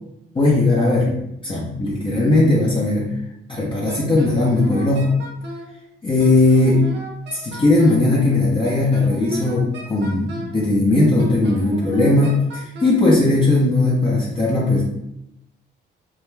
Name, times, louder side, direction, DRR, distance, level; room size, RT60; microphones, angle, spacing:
voice 1, 0.3-3.1 3.5-5.2 6.0-6.9 7.3-14.8, left 2 dB, 25° left, -5 dB, 0.6 m, -18 dB
Wind instrument woodwind instrument, 3.9-5.7 6.2-8.1 8.6-10.6 11.2-13.0, equal, 60° right, 0.7 m, -36 dB
2.3 x 2.2 x 3.1 m, 0.82 s
cardioid pair, 90°, 20 cm